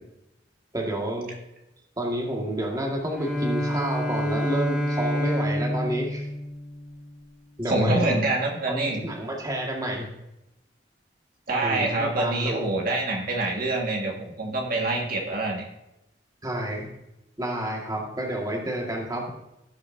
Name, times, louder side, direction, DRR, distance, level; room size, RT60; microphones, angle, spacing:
voice 1, 0.7-1.3 2.0-6.3 7.6-8.1 8.7-10.1 11.6-12.7 16.4-16.9 17.4-19.3, right 1 dB, 20° right, -1 dB, 1.9 m, -29 dB
Bowed string instrument, 3.0-7.2, equal, 5° right, 1.7 m, -28 dB
voice 2, 7.7-9.0 11.5-15.6, right 2 dB, 55° right, -1 dB, 1.8 m, -25 dB
17.5 x 6.5 x 2.7 m, 0.89 s
head